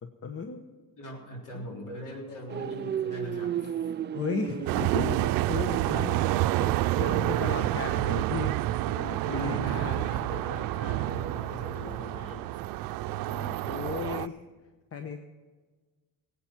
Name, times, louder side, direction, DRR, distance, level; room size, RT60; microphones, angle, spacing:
voice 1, 0.0-0.6 1.5-1.7 4.1-10.1 10.3-10.4 11.9-12.0 13.1-14.4 14.9-15.2, left 6 dB, 45° left, 6 dB, 1.0 m, -36 dB
voice 2, 0.7-3.9 7.4-7.5 9.4-12.5, left 1 dB, 65° left, 0 dB, 3.6 m, -41 dB
sound 1, 2.5-11.6 11.9-12.1, right 9 dB, 35° right, 0.4 m, -36 dB
sound 2, 4.7-14.3, right 16 dB, 85° right, 0.5 m, -28 dB
17.5 x 8.7 x 6.0 m, 1.4 s
cardioid pair, 85°, 34 cm